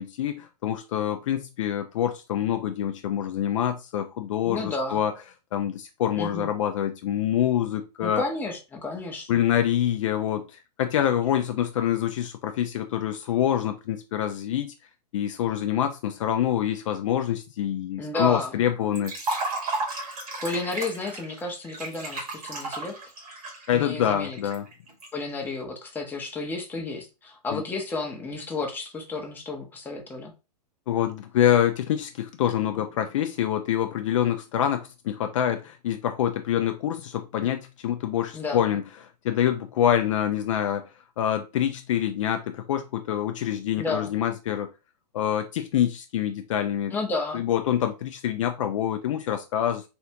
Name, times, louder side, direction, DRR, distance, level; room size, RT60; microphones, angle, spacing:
voice 1, 0.0-5.1 5.5-8.2 9.3-14.7 15.1-19.1 23.7-24.6 27.5-27.6 30.9-38.8 39.2-40.8 41.2-44.7 45.1-46.9 47.3-49.8, left 10 dB, 50° left, 6 dB, 0.4 m, -26 dB
voice 2, 4.4-5.0 6.2-6.5 8.0-9.4 18.0-18.6 20.4-23.1 23.7-24.4 25.1-30.3 38.3-38.6 43.8-44.1 46.9-47.4, left 3 dB, 10° left, 1 dB, 0.7 m, -32 dB
Liquid, 19.0-25.1, right 2 dB, 60° right, 1.7 m, -33 dB
3.4 x 2.4 x 2.8 m, 0.28 s
figure-of-eight pair, 115°, 21 cm